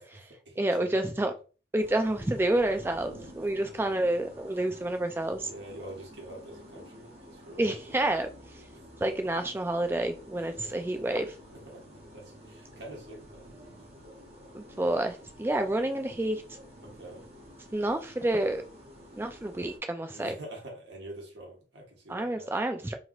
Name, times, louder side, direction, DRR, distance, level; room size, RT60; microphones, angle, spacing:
voice 1, 0.0-1.2 3.2-3.5 5.4-8.0 8.7-8.9 10.4-11.0 11.6-11.8 12.1-13.5 16.8-17.2 20.1-22.6, right 1 dB, 75° right, 1.1 m, -46 dB
voice 2, 0.6-1.3 1.7-5.5 7.6-8.3 9.0-11.3 14.5-16.4 17.7-18.6 19.2-20.3 22.1-23.0, right 1 dB, 10° right, 0.3 m, -29 dB
sound 1, 1.8-19.8, equal, 35° right, 0.8 m, -50 dB
3.1 x 2.8 x 2.4 m
head